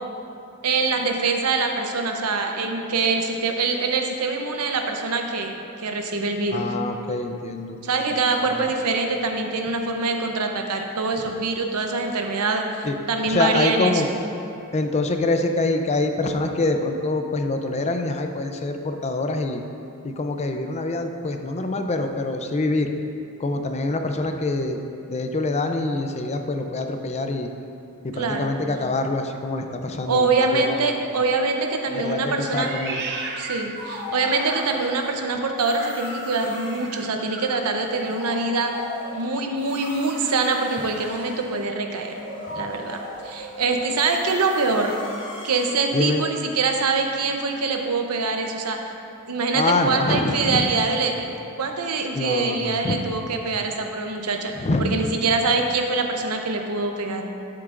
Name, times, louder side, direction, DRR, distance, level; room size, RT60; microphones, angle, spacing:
voice 1, 0.6-6.7 7.8-14.0 28.1-28.5 30.1-32.8 33.4-38.7 39.1-42.1 42.5-44.9 45.4-48.8 49.3-51.3 51.6-54.5 54.8-57.3, right 3 dB, 85° right, 4 dB, 0.8 m, -24 dB
voice 2, 6.5-7.8 12.8-13.0 13.3-14.1 14.7-19.6 20.0-22.9 23.4-24.8 25.1-27.5 28.0-30.7 31.9-33.0 42.5-42.7 45.9-46.2 49.5-50.6 52.1-53.0 54.6-55.1, left 2 dB, 30° left, 5 dB, 0.5 m, -25 dB
Meow, 32.5-35.0 35.6-37.6, right 3 dB, 50° right, 0.7 m, -35 dB
sound 1, 33.8-35.2 35.6-37.0 37.5-45.7, left 2 dB, 55° left, 1.3 m, -38 dB
11.0 x 7.6 x 2.5 m, 2.7 s
head